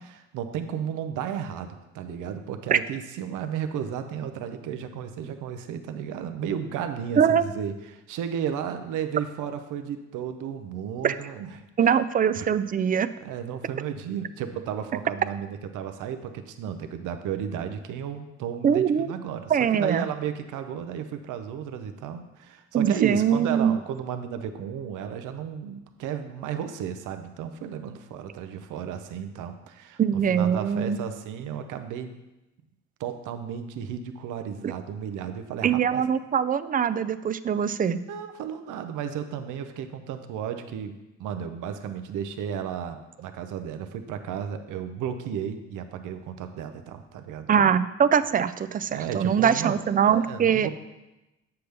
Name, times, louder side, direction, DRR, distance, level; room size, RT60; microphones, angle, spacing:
voice 1, 0.0-12.0 12.3-12.5 13.2-30.0 30.3-32.1 33.0-36.0 38.1-40.9 41.2-47.5 48.9-50.7, right 8 dB, 90° right, 8 dB, 0.6 m, -33 dB
voice 2, 11.8-13.1 18.6-19.1 19.5-20.0 22.7-23.8 30.0-31.0 34.6-34.7 35.6-38.0 47.5-50.7, right 8 dB, 30° right, 13 dB, 0.4 m, -22 dB
7.8 x 6.9 x 3.4 m, 1.0 s
cardioid pair, 90°, 30 cm